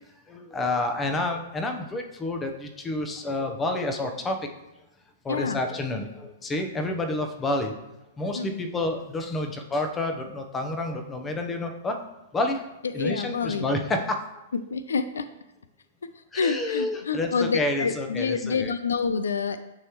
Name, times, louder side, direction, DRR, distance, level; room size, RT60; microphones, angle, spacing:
voice 1, 0.3-4.5 5.2-7.8 8.2-12.0 12.3-12.6 12.9-14.2 16.3-18.7, left 2 dB, 15° left, 5 dB, 0.7 m, -29 dB
voice 2, 5.3-5.6 8.3-8.7 12.8-13.7 14.5-15.3 16.2-19.6, left 5 dB, 85° left, 11 dB, 0.3 m, -28 dB
9.7 x 3.4 x 3.0 m, 0.90 s
hypercardioid pair, 125°, 0 cm